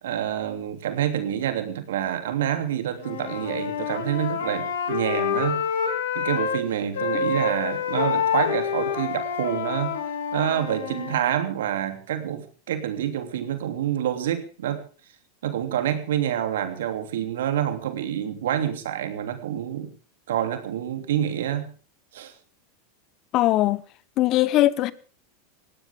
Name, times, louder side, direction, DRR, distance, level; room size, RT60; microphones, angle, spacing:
voice 1, 0.0-5.6 6.1-10.0 10.3-14.8 15.4-19.9 20.3-21.7 22.1-22.3, right 10 dB, 80° right, 3.0 m, -27 dB
Wind instrument woodwind instrument, 3.0-6.6 6.9-11.2, left 6 dB, 80° left, 3.6 m, -27 dB
voice 2, 23.3-23.8 24.2-24.9, left 15 dB, 45° left, 1.1 m, -20 dB
19.5 x 17.0 x 3.7 m
hypercardioid pair, 105°, 0 cm